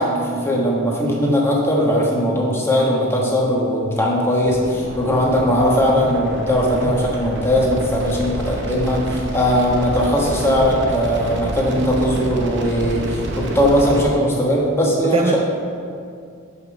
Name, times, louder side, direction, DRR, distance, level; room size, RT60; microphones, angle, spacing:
voice 1, 0.0-15.4, equal, 10° left, -3 dB, 1.2 m, -19 dB
sound 1, 4.4-14.0, right 1 dB, 60° right, 0.8 m, -29 dB
voice 2, 15.0-15.4, right 4 dB, 25° right, 3 dB, 0.3 m, -22 dB
5.7 x 5.3 x 6.1 m, 2.4 s
head